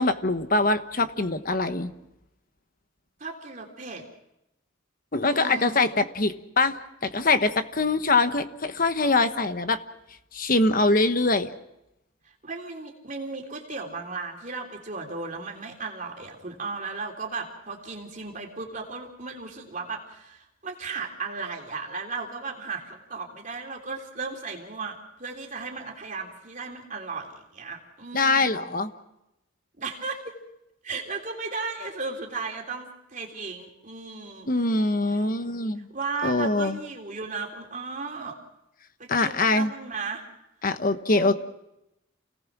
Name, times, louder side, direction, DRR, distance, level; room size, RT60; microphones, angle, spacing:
voice 1, 0.0-1.9 5.1-6.8 7.0-9.8 10.3-11.5 28.1-28.9 34.5-35.9 36.2-36.8 39.1-39.7 40.6-41.3, left 3 dB, 40° left, 9 dB, 1.2 m, -23 dB
voice 2, 3.2-4.1 5.2-6.0 12.2-28.7 29.8-30.4 30.8-34.5 35.1-35.2 35.8-38.4 39.0-40.3 41.1-41.3, right 4 dB, 35° right, 1 dB, 3.3 m, -35 dB
29.0 x 18.5 x 6.1 m, 0.89 s
head